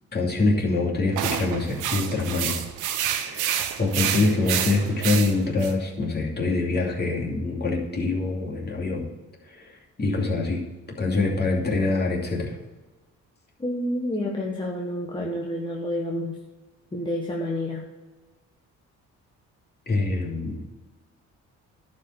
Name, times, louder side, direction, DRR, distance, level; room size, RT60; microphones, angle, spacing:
voice 1, 0.1-2.6 3.2-9.1 9.5-9.7 10.0-10.6 11.0-12.6 19.9-20.6, left 3 dB, 35° left, -1 dB, 2.7 m, -25 dB
sound 1, 1.2-5.7, right 9 dB, 90° right, 1.0 m, -28 dB
voice 2, 13.6-16.4 16.9-17.8, left 1 dB, 15° left, -2 dB, 1.4 m, -29 dB
11.0 x 5.2 x 6.4 m, 1.2 s
cardioid pair, 90°, 30 cm